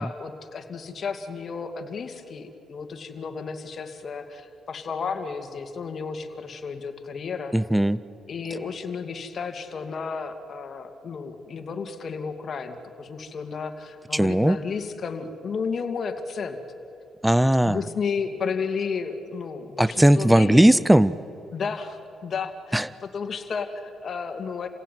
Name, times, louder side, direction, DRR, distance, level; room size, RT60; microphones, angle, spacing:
voice 1, 0.0-7.6 8.3-16.6 17.6-20.8 21.5-22.9 23.1-24.7, left 5 dB, 50° left, 5 dB, 2.4 m, -32 dB
voice 2, 7.5-8.0 14.1-14.6 17.2-17.8 19.8-21.1 22.7-22.9, right 1 dB, 5° right, 18 dB, 0.6 m, -18 dB
29.0 x 16.5 x 9.4 m, 2.9 s
cardioid pair, 90°, 0 cm